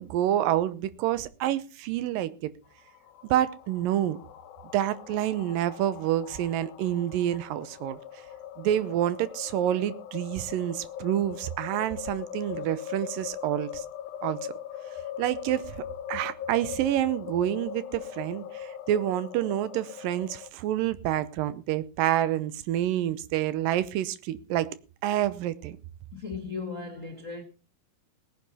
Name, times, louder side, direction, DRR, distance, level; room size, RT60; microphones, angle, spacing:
voice 1, 0.0-2.5 3.2-4.2 4.7-8.0 8.6-13.9 14.2-14.4 15.2-24.7 25.0-25.8, right 12 dB, 80° right, 2.3 m, -28 dB
sound 1, 2.7-20.5, left 9 dB, 85° left, 2.6 m, -40 dB
voice 2, 26.1-27.4, left 5 dB, 55° left, 0.8 m, -36 dB
18.0 x 10.0 x 4.1 m
omnidirectional pair, 4.1 m